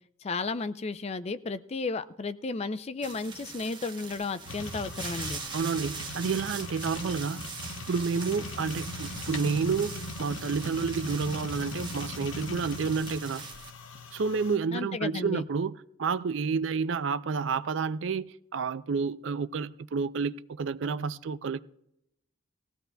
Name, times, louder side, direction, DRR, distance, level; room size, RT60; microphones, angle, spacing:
voice 1, 0.2-5.4 14.7-15.5, left 3 dB, 30° left, 0.4 m, -33 dB
sound 1, 3.0-13.7, right 5 dB, 20° right, 0.9 m, -42 dB
sound 2, 4.5-14.6, left 2 dB, 70° left, 0.8 m, -40 dB
voice 2, 5.5-7.4 7.9-13.4 14.1-21.6, right 5 dB, 60° right, 0.4 m, -30 dB
19.0 x 15.0 x 2.3 m
head